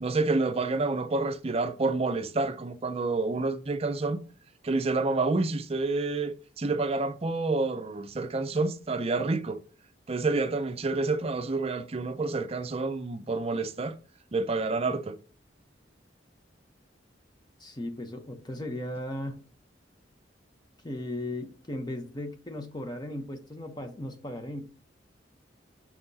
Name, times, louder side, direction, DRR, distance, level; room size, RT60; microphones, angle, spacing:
voice 1, 0.0-4.2 4.6-9.6 10.1-14.0 14.3-15.2, right 3 dB, 35° right, 0.5 m, -28 dB
voice 2, 17.6-19.4 20.8-24.7, left 1 dB, 25° left, 0.9 m, -36 dB
6.1 x 5.7 x 2.8 m
head